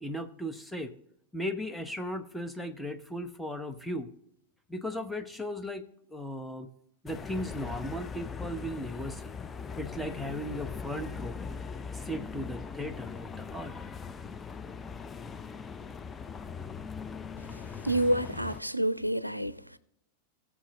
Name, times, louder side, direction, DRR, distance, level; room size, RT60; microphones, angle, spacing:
voice 1, 0.0-0.9 1.3-4.1 4.7-5.8 6.1-6.7 7.0-9.3 9.8-11.4 11.9-13.7, equal, ahead, 0.8 m, -36 dB
sound 1, 7.1-18.6, left 5 dB, 15° left, 0.5 m, -40 dB
voice 2, 17.8-19.8, right 1 dB, 90° right, 0.4 m, -28 dB
18.0 x 7.3 x 3.0 m
figure-of-eight pair, 90°, 0 cm